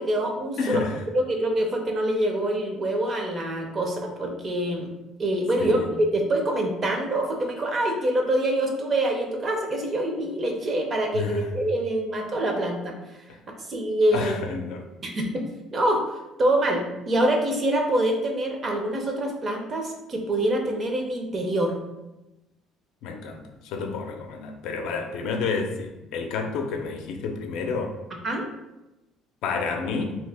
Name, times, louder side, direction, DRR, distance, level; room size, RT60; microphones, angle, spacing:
voice 1, 0.0-0.8 1.1-4.9 5.2-12.9 13.5-14.3 14.7-21.7 28.2-28.5, right 1 dB, 30° right, 2 dB, 0.5 m, -25 dB
voice 2, 0.6-1.0 5.6-5.9 11.1-11.5 14.1-14.8 23.0-27.9 29.4-30.2, left 4 dB, 75° left, 4 dB, 0.5 m, -29 dB
2.8 x 2.7 x 3.3 m, 0.99 s
cardioid pair, 145°, 0 cm